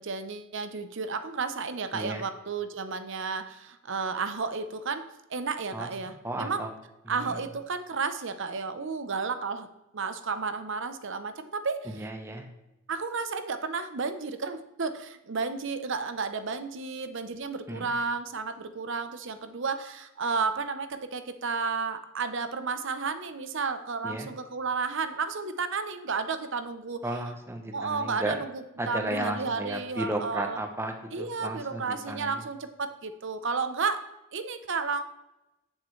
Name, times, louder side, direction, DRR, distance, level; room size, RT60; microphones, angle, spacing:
voice 1, 0.0-6.7 7.1-9.7 9.9-11.9 12.9-27.0 27.7-30.6 31.1-34.0 34.3-35.0, right 4 dB, 60° right, 10 dB, 0.7 m, -32 dB
voice 2, 1.9-2.2 5.7-6.7 7.1-7.4 11.8-12.5 17.7-17.9 24.0-24.3 27.0-28.4 28.8-32.4, right 1 dB, 10° right, 4 dB, 1.0 m, -34 dB
8.6 x 7.5 x 3.2 m, 0.93 s
head